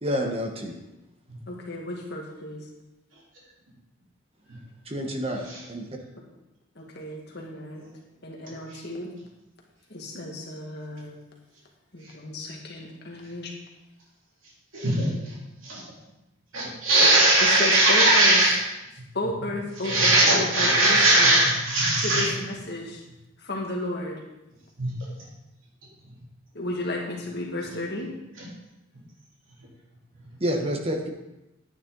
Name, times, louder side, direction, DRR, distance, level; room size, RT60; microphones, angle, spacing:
voice 1, 0.0-0.7 4.9-5.9 30.4-31.1, equal, 30° right, 3 dB, 1.1 m, -28 dB
voice 2, 1.5-2.6 6.8-7.9 8.2-9.1 9.9-11.2 11.9-13.5 17.4-18.4 19.1-21.4 22.0-23.0 23.4-24.2 26.5-28.1, left 2 dB, 50° left, -1 dB, 1.9 m, -33 dB
voice 3, 14.7-15.1 15.6-15.8 16.5-18.6 19.8-22.3 24.8-24.9, right 2 dB, 75° right, -5 dB, 3.4 m, -19 dB
10.5 x 9.4 x 3.9 m, 0.95 s
head